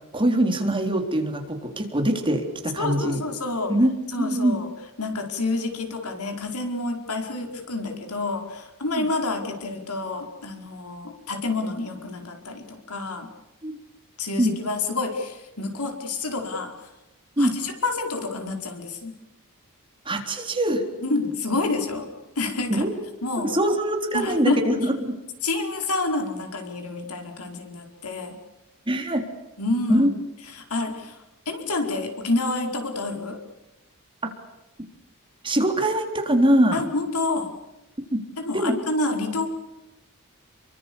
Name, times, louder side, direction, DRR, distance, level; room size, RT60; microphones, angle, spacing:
voice 1, 0.1-3.2 3.7-3.9 4.2-4.6 8.9-9.1 13.6-13.8 14.4-14.5 17.4-17.5 20.1-20.8 22.7-22.9 23.5-25.1 28.9-29.2 29.9-30.1 35.4-36.8 38.1-38.2 38.5-38.7, right 1 dB, 25° right, 4 dB, 3.7 m, -22 dB
voice 2, 2.8-3.7 4.1-4.7 5.0-13.3 14.2-16.7 17.4-19.1 21.0-22.1 22.4-22.9 23.2-23.5 24.1-24.7 25.4-28.4 29.6-30.1 30.5-31.2 31.4-33.4 36.7-37.5 38.4-39.5, left 2 dB, 85° left, 4 dB, 4.9 m, -28 dB
28.5 x 24.0 x 7.1 m, 1.0 s
head